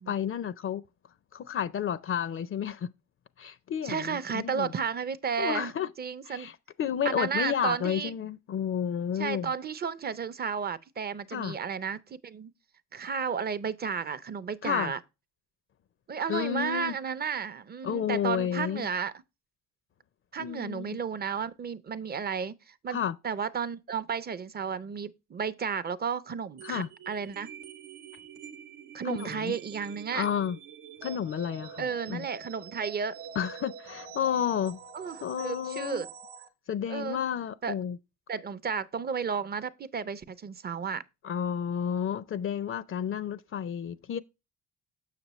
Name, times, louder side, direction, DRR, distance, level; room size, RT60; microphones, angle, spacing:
voice 1, 0.1-0.8 1.3-2.9 3.4-4.7 5.4-5.9 6.3-9.5 11.3-11.6 14.6-14.9 16.3-17.0 17.8-18.9 20.4-20.9 22.9-23.2 26.6-26.9 29.0-29.6 30.1-30.6 31.0-32.3 33.4-34.8 35.2-36.0 36.7-38.0 41.2-44.2, left 8 dB, 45° left, 0.5 m, -31 dB
voice 2, 3.8-5.7 6.0-6.5 7.0-8.1 9.2-12.5 12.9-15.0 16.1-19.1 20.3-23.0 23.2-27.5 28.9-30.3 31.8-33.2 34.9-36.1 36.9-37.2 37.6-37.8 38.3-41.0, right 6 dB, 30° right, 0.6 m, -33 dB
sound 1, 26.6-36.5, right 7 dB, 85° right, 1.0 m, -46 dB
6.7 x 6.6 x 3.0 m
cardioid pair, 90°, 30 cm